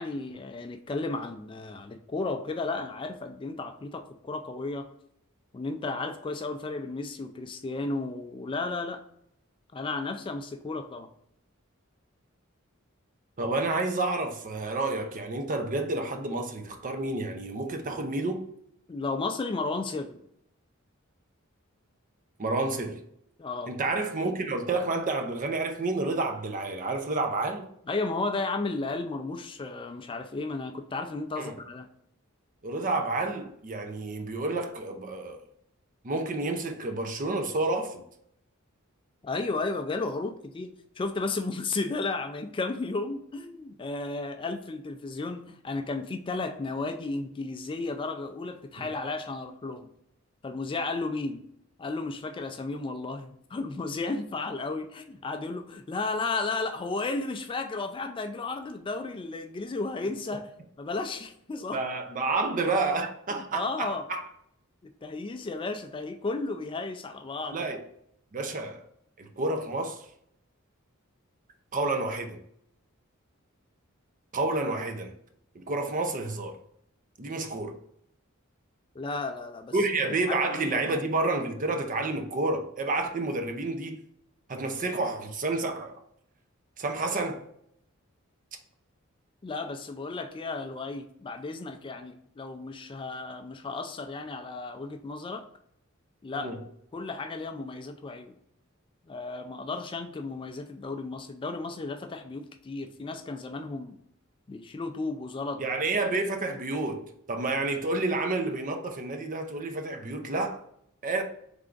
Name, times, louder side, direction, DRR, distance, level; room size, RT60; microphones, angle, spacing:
voice 1, 0.0-4.9 5.5-9.0 9.7-11.1 18.9-20.2 23.4-23.8 27.9-31.9 39.2-49.9 50.4-51.5 51.8-60.5 60.8-61.8 63.3-64.0 65.0-67.6 79.0-79.7 80.3-81.0 89.4-95.4 96.2-96.5 96.9-98.4 99.1-104.0 104.5-105.6, left 3 dB, 25° left, 0.3 m, -33 dB
voice 2, 13.4-18.4 22.4-23.0 23.7-27.7 31.4-31.6 32.6-35.4 36.0-38.0 48.8-48.9 61.7-64.2 67.5-67.8 68.3-68.8 69.2-70.1 71.7-72.4 74.3-75.1 75.5-76.6 77.2-77.8 79.7-84.0 84.5-85.9 86.8-87.4 96.3-96.6 105.6-110.6 111.0-111.2, right 2 dB, 40° right, 0.6 m, -30 dB
3.6 x 3.4 x 3.8 m
head